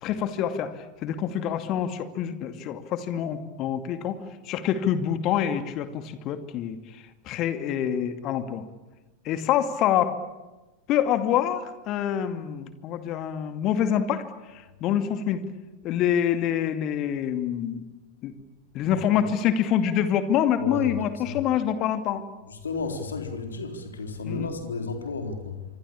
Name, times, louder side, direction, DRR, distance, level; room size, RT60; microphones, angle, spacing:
voice 1, 0.0-0.7 1.0-4.2 4.5-6.8 7.3-8.6 9.2-10.2 10.9-14.3 14.8-15.4 15.8-17.8 18.2-18.3 18.7-22.2 24.2-24.5, left 9 dB, 35° left, 9 dB, 2.4 m, -26 dB
voice 2, 18.9-19.2 20.6-21.0 21.3-21.5 22.5-25.6, left 4 dB, 70° left, 5 dB, 4.0 m, -33 dB
26.5 x 24.5 x 8.7 m, 1.1 s
figure-of-eight pair, 90°, 0 cm